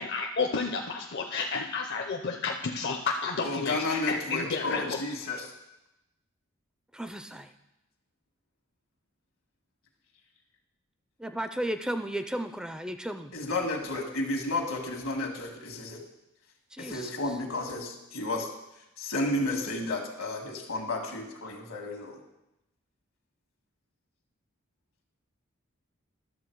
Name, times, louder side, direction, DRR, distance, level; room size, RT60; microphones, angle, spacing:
voice 1, 0.0-5.0, left 4 dB, 55° left, 2 dB, 0.6 m, -31 dB
voice 2, 3.4-5.4 13.3-16.0 16.8-18.5 19.0-22.2, left 2 dB, 80° left, 3 dB, 1.7 m, -32 dB
voice 3, 6.9-7.5 11.2-13.3 16.7-17.1, right 1 dB, 5° right, 8 dB, 0.3 m, -34 dB
12.0 x 6.9 x 4.6 m, 0.91 s
head